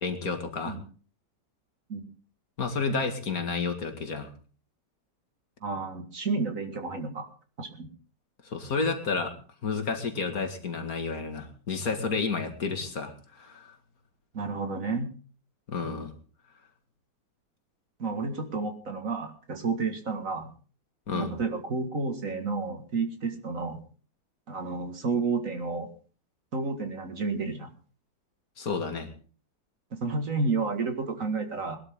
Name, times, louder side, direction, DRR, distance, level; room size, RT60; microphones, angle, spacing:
voice 1, 0.0-0.8 2.6-4.3 8.4-9.4 9.6-13.7 15.7-16.1 21.1-21.3 28.6-29.1, left 4 dB, 55° left, 6 dB, 2.5 m, -31 dB
voice 2, 5.6-7.3 7.6-7.9 14.3-15.1 18.0-20.5 21.1-23.8 24.5-25.9 26.5-27.7 29.9-31.8, right 4 dB, 50° right, 6 dB, 2.3 m, -31 dB
21.5 x 12.0 x 3.7 m, 0.39 s
omnidirectional pair, 1.9 m